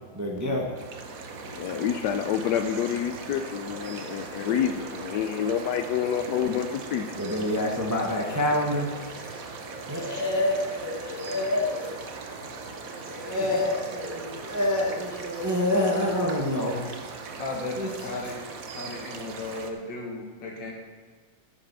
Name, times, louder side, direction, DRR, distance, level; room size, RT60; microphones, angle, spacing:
voice 1, 0.1-0.9 7.2-9.4 9.8-17.4 17.8-17.9, left 1 dB, 10° right, -1 dB, 1.1 m, -28 dB
sound 1, 0.8-19.7, right 4 dB, 50° right, 1.2 m, -39 dB
voice 2, 1.4-7.2, left 9 dB, 75° left, 8 dB, 1.0 m, -28 dB
voice 3, 17.4-18.4 18.7-20.7, left 2 dB, 60° left, 0 dB, 2.5 m, -35 dB
14.0 x 6.6 x 6.1 m, 1.5 s
omnidirectional pair, 2.3 m